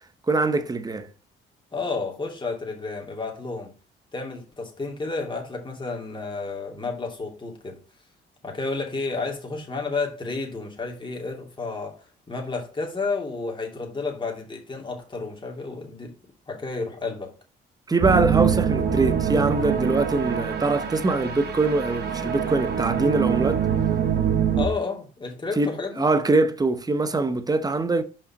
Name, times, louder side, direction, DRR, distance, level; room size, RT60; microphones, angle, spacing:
voice 1, 0.3-1.1 17.9-23.7 25.6-28.0, right 3 dB, 20° right, 0.9 m, -23 dB
voice 2, 1.7-3.7 4.1-7.8 8.4-12.0 12.3-16.2 16.5-17.3 24.5-26.1, left 3 dB, 25° left, 2.7 m, -31 dB
sound 1, 18.0-24.7, right 8 dB, 55° right, 1.2 m, -24 dB
5.5 x 5.3 x 5.9 m
cardioid pair, 90°, 20 cm